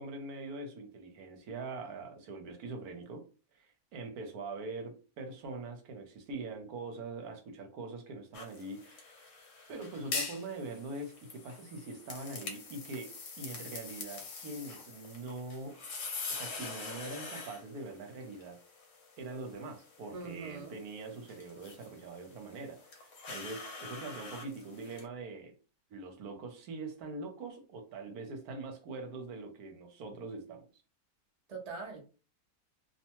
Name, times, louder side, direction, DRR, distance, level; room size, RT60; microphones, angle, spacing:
voice 1, 0.0-3.3 3.6-9.0 9.7-15.8 16.3-18.6 19.2-25.5 25.9-30.7, right 3 dB, 75° right, 1.2 m, -43 dB
sound 1, 8.3-25.0, left 4 dB, 60° left, 1.0 m, -44 dB
voice 2, 20.1-20.8 31.5-32.0, right 4 dB, 45° right, 0.5 m, -42 dB
2.7 x 2.2 x 2.9 m
omnidirectional pair, 1.6 m